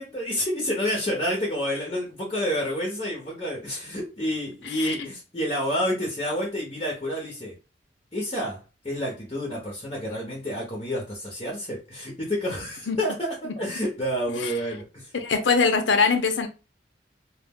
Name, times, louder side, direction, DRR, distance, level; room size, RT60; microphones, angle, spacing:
voice 1, 0.0-7.6 8.1-15.1, equal, 30° left, 0.8 m, -29 dB
voice 2, 15.1-16.5, left 5 dB, 90° left, 0.6 m, -22 dB
2.4 x 2.0 x 3.5 m
head